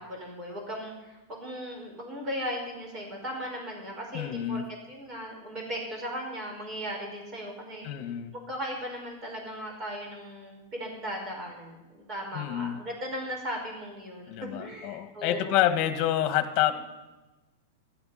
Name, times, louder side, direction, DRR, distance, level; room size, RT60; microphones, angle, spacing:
voice 1, 0.0-4.6 4.9-7.9 8.3-15.7, equal, 25° right, 0 dB, 5.3 m, -37 dB
voice 2, 4.1-4.6 7.8-8.3 12.3-12.8 14.3-16.7, left 12 dB, 40° left, 9 dB, 1.6 m, -27 dB
16.0 x 12.0 x 5.8 m, 1.1 s
supercardioid pair, 150°, 0 cm